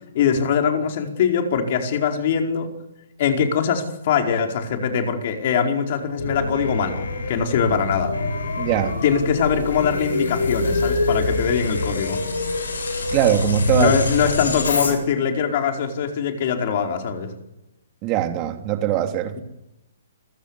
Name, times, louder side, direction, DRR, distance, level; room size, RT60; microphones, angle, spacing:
voice 1, 0.1-2.7 3.2-8.1 9.0-12.2 13.7-17.3 19.3-19.4, left 7 dB, 50° left, 4 dB, 4.7 m, -22 dB
sound 1, 6.2-14.9, left 3 dB, 80° left, 7.4 m, -25 dB
voice 2, 8.6-8.9 13.1-14.0 14.2-14.3 18.0-19.3, right 12 dB, 30° right, 6 dB, 3.2 m, -21 dB
27.5 x 16.0 x 9.9 m, 0.91 s
hypercardioid pair, 135°, 0 cm